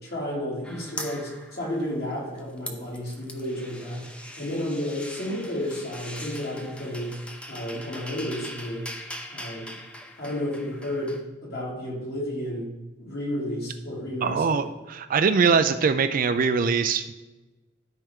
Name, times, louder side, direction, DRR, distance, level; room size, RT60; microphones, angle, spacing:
voice 1, 0.0-4.1 4.4-7.2 7.5-8.9 9.3-9.8 10.2-12.7 13.0-14.6, left 1 dB, 50° left, -5 dB, 2.8 m, -32 dB
sound 1, 0.6-2.1 2.4-11.2, left 1 dB, 5° left, 0.7 m, -41 dB
voice 2, 14.2-17.2, right 5 dB, 40° right, 10 dB, 0.4 m, -22 dB
13.0 x 4.5 x 3.7 m, 1.1 s
head